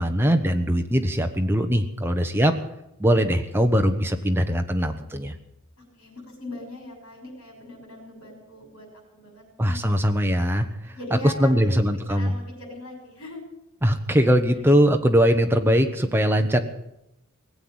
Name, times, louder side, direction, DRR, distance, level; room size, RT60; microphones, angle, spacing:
voice 1, 0.0-2.5 3.0-5.3 9.6-10.7 11.2-12.3 13.8-16.6, equal, 10° right, 5 dB, 1.0 m, -21 dB
voice 2, 5.8-9.8 10.9-11.8 12.1-13.4, left 1 dB, 80° left, 2 dB, 6.2 m, -39 dB
19.0 x 8.0 x 8.8 m, 0.85 s
head